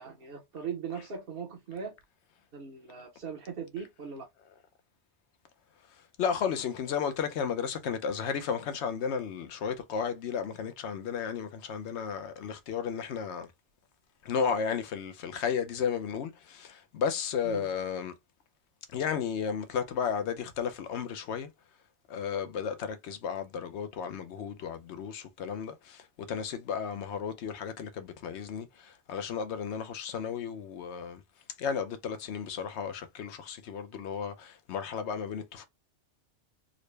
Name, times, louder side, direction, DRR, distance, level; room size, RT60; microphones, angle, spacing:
voice 1, 0.0-2.0 2.5-4.3 17.4-17.7, right 6 dB, 55° right, 1.0 m, -39 dB
voice 2, 5.9-13.5 14.2-18.1 18.9-21.5 22.1-31.2 31.6-35.6, left 7 dB, 70° left, 0.9 m, -33 dB
3.8 x 2.1 x 3.2 m
omnidirectional pair, 1.2 m